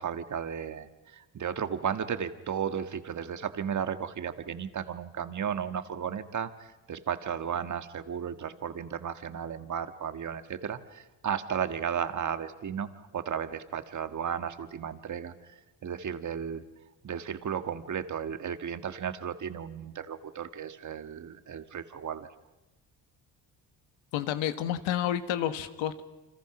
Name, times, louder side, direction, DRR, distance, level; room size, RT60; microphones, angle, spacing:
voice 1, 0.0-12.9 13.1-15.3 15.8-16.6 17.0-22.3, right 8 dB, 40° right, 10 dB, 1.6 m, -34 dB
voice 2, 24.1-26.0, left 11 dB, 80° left, 10 dB, 1.6 m, -30 dB
30.0 x 25.5 x 6.1 m, 1.0 s
cardioid pair, 95°, 45 cm